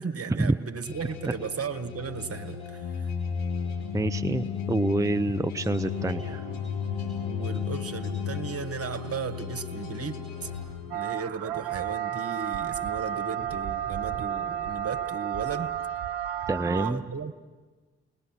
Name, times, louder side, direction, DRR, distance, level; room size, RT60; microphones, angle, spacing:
voice 1, 0.0-3.1 7.3-10.5 10.9-15.7 16.7-17.4, right 5 dB, 50° right, 9 dB, 1.6 m, -35 dB
sound 1, 0.8-11.5, left 6 dB, 90° left, 4.5 m, -40 dB
sound 2, 2.8-8.6, left 7 dB, 65° left, 0.9 m, -32 dB
voice 2, 3.9-6.4 16.5-17.0, right 2 dB, 10° right, 9 dB, 0.7 m, -27 dB
Call to Prayer - Marrakech, 10.9-16.9, right 10 dB, 80° right, 0.8 m, -32 dB
29.5 x 20.5 x 6.0 m, 1.3 s
hypercardioid pair, 40°, 31 cm